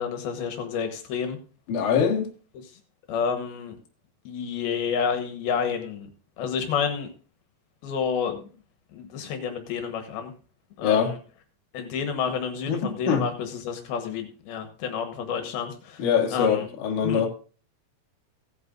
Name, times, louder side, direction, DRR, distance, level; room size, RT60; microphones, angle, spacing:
voice 1, 0.0-1.4 3.1-3.8 4.3-6.1 6.4-7.1 7.8-8.4 8.9-10.3 10.8-11.2 11.7-16.1 16.3-16.7 17.0-17.2, left 7 dB, 80° left, 3.0 m, -29 dB
voice 2, 1.7-2.3 10.8-11.1 12.7-12.8 13.1-13.2 16.0-17.3, left 7 dB, 60° left, 2.7 m, -23 dB
17.0 x 9.7 x 2.5 m
omnidirectional pair, 4.4 m